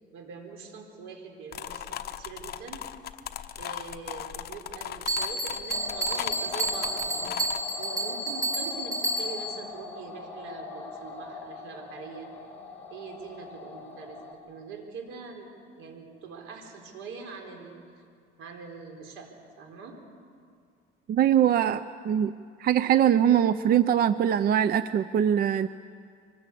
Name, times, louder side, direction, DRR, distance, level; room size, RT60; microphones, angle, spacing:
voice 1, 0.1-2.8 3.6-12.3 12.9-17.8 18.4-20.0, right 4 dB, 85° right, 3 dB, 4.3 m, -43 dB
sound 1, 1.5-7.6, left 10 dB, 50° left, 0.9 m, -37 dB
Bell, 5.1-9.6, right 1 dB, 15° right, 3.8 m, -30 dB
sound 2, 5.7-14.3, left 4 dB, 10° left, 4.6 m, -42 dB
voice 2, 21.1-22.3 22.6-25.7, right 9 dB, 50° right, 13 dB, 0.6 m, -22 dB
24.5 x 20.0 x 8.5 m, 2.2 s
cardioid pair, 125°, 21 cm